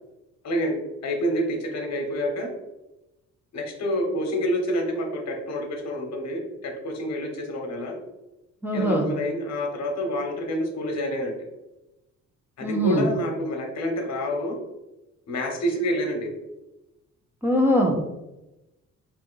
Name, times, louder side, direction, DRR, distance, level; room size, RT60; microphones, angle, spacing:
voice 1, 0.4-2.5 3.5-7.9 8.7-11.4 12.6-14.6 15.3-16.3, equal, 60° left, 3 dB, 1.1 m, -28 dB
voice 2, 8.6-9.1 12.6-13.1 17.4-18.1, equal, 5° right, 0 dB, 1.0 m, -22 dB
4.1 x 2.6 x 3.9 m, 0.96 s
cardioid pair, 90°, 30 cm